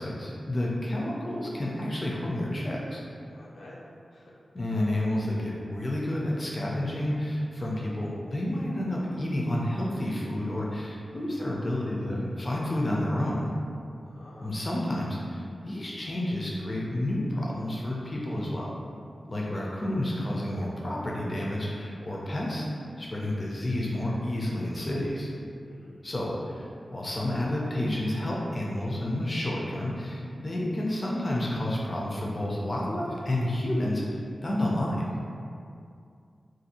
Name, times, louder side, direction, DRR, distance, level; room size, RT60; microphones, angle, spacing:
voice 1, 0.0-3.0 4.5-13.5 14.4-18.7 19.3-22.7 23.0-25.3 26.0-35.1, left 1 dB, 30° left, -4 dB, 0.4 m, -30 dB
voice 2, 3.3-3.8 4.1-4.4 14.0-14.6 25.6-26.0 35.8-35.9, left 1 dB, 90° left, -5 dB, 0.5 m, -50 dB
2.5 x 2.3 x 2.7 m, 2.4 s
wide cardioid pair, 120°, 0 cm